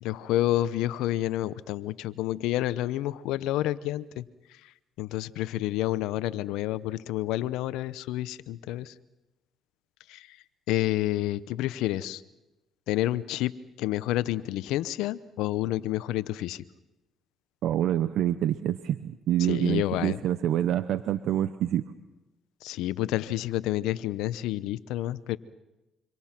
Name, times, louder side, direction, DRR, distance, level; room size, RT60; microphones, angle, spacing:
voice 1, 0.0-4.2 5.0-8.9 10.1-10.3 10.7-12.2 12.9-13.5 13.8-16.6 19.5-20.2 22.6-25.4, left 15 dB, 80° left, 16 dB, 0.8 m, -29 dB
voice 2, 17.6-21.8, right 11 dB, 70° right, 12 dB, 0.9 m, -26 dB
26.0 x 25.5 x 6.0 m, 1.0 s
supercardioid pair, 70°, 0 cm